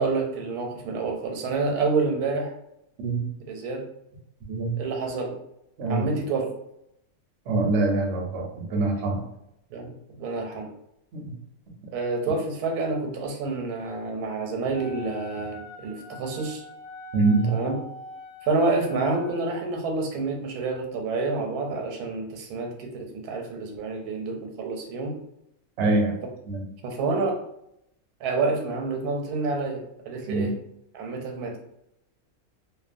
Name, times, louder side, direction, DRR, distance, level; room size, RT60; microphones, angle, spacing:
voice 1, 0.0-2.5 3.5-3.8 4.8-5.3 5.9-6.5 9.7-10.7 11.9-16.6 17.5-17.7 18.4-25.1 26.8-27.4 28.2-30.5 30.9-31.5, right 3 dB, 85° right, 2 dB, 1.1 m, -28 dB
voice 2, 7.5-9.2 11.1-11.3 17.1-17.5 25.8-26.2 26.5-26.7 30.3-30.5, right 3 dB, 60° right, 0 dB, 0.8 m, -24 dB
Wind instrument woodwind instrument, 14.7-19.8, left 2 dB, 70° left, 1.1 m, -43 dB
2.7 x 2.1 x 2.4 m, 0.79 s
omnidirectional pair, 1.6 m